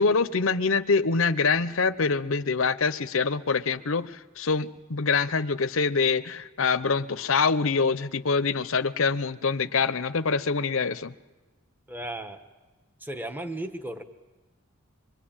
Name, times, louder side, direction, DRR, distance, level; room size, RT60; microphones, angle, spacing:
voice 1, 0.0-11.1, left 4 dB, 65° left, 12 dB, 0.8 m, -25 dB
voice 2, 11.9-12.4 13.0-14.0, right 1 dB, 10° right, 8 dB, 1.1 m, -35 dB
25.0 x 23.0 x 8.9 m, 1.2 s
head